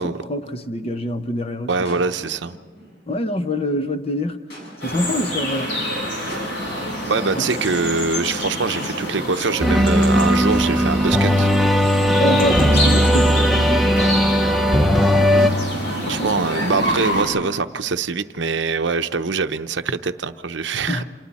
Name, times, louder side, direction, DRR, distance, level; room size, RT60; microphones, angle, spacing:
voice 1, 0.0-1.7 3.1-4.4 4.8-5.7 7.4-7.5 12.2-14.2 16.1-16.3 20.9-21.0, equal, 30° left, 0.9 m, -25 dB
voice 2, 1.7-2.6 7.1-11.5 16.1-21.0, right 4 dB, 65° right, 0.8 m, -23 dB
sound 1, 1.8-3.3 4.5-5.3 6.1-7.5 8.7-9.7 10.5-11.5 12.8-14.3 14.9-17.8 18.6-19.1, left 1 dB, 60° left, 7.4 m, -42 dB
sound 2, 4.8-17.2, equal, 80° left, 6.8 m, -27 dB
sound 3, 9.6-15.5, equal, ahead, 0.7 m, -17 dB
28.5 x 27.5 x 4.2 m
head